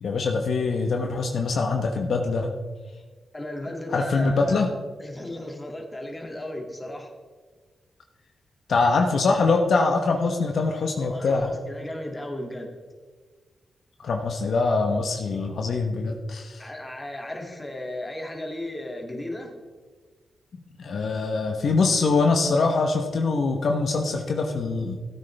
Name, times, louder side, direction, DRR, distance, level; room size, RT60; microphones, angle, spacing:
voice 1, 0.0-2.5 3.9-4.7 8.7-11.5 14.0-16.6 20.8-25.0, left 3 dB, 70° left, 3 dB, 1.0 m, -23 dB
voice 2, 3.3-4.6 5.0-7.1 11.0-12.7 16.6-19.6, left 1 dB, 20° left, 1 dB, 2.3 m, -35 dB
14.5 x 8.8 x 3.4 m, 1.4 s
cardioid pair, 60°, 0 cm